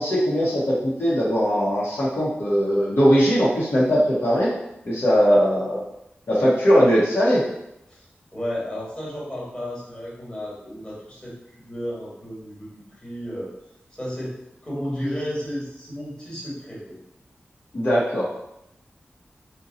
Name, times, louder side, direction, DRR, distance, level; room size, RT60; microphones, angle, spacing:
voice 1, 0.0-4.5 4.8-5.8 6.3-7.4 17.7-18.3, equal, 65° left, -7 dB, 0.8 m, -20 dB
voice 2, 8.3-11.3 11.7-13.5 14.0-14.4 14.6-17.0, equal, 20° left, -6 dB, 1.3 m, -32 dB
2.7 x 2.2 x 3.7 m, 0.83 s
wide cardioid pair, 65°, 4 cm